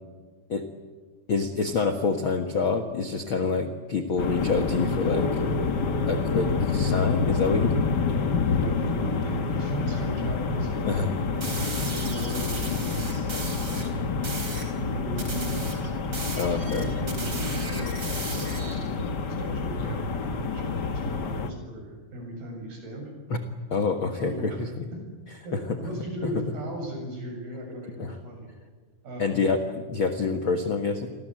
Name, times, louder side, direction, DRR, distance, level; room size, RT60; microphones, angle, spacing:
voice 1, 1.3-5.4 6.1-7.9 10.9-11.1 16.4-16.8 23.3-23.4 23.7-24.5 24.8-24.9 25.5-25.8 26.2-26.3 28.0-28.1 29.2-31.1, left 4 dB, 50° left, 6 dB, 1.5 m, -27 dB
sound 1, 4.2-21.5, left 4 dB, 85° left, 0.9 m, -28 dB
voice 2, 8.5-11.1 11.4-12.9 13.6-14.0 14.7-23.1 24.2-24.6 24.9-25.0 25.4-28.5 29.0-29.4, right 1 dB, 70° right, 2 dB, 9.2 m, -37 dB
sound 2, 11.4-13.9 14.2-14.7 15.2-18.9, right 3 dB, 25° right, 4.4 m, -37 dB
30.0 x 24.0 x 7.9 m, 1.3 s
omnidirectional pair, 4.6 m